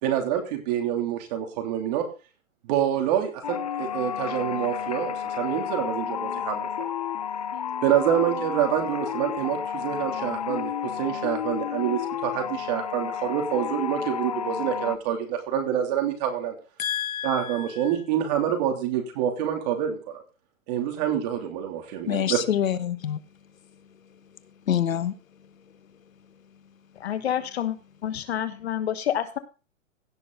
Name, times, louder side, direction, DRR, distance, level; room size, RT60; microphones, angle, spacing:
voice 1, 0.0-2.0 2.7-6.7 7.8-16.6 17.2-20.2 20.7-22.4, right 10 dB, 30° right, 2.9 m, -27 dB
sound 1, 3.4-15.0, left 8 dB, 30° left, 0.4 m, -31 dB
voice 2, 16.8-17.7 22.1-23.2 24.7-25.1, left 9 dB, 80° left, 1.1 m, -26 dB
voice 3, 27.0-27.8 28.0-29.4, left 10 dB, 50° left, 1.3 m, -28 dB
16.5 x 6.2 x 3.9 m
hypercardioid pair, 155°, 40 cm